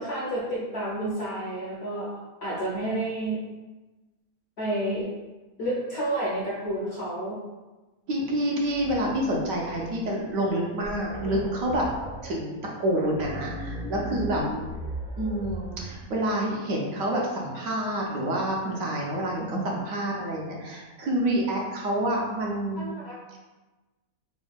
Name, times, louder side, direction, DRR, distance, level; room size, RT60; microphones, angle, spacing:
voice 1, 0.0-2.1 2.4-3.4 4.6-5.1 5.6-7.4 22.8-23.1, right 1 dB, 60° left, -6 dB, 0.7 m, -30 dB
voice 2, 8.1-11.8 12.2-12.5 12.8-14.4 15.2-22.8, right 1 dB, 70° right, -2 dB, 0.9 m, -28 dB
sound 1, 8.6-10.1 10.5-10.6 10.8-12.4 13.0-16.1, right 1 dB, 45° right, 0.7 m, -37 dB
4.2 x 2.1 x 2.3 m, 1.2 s
omnidirectional pair, 1.6 m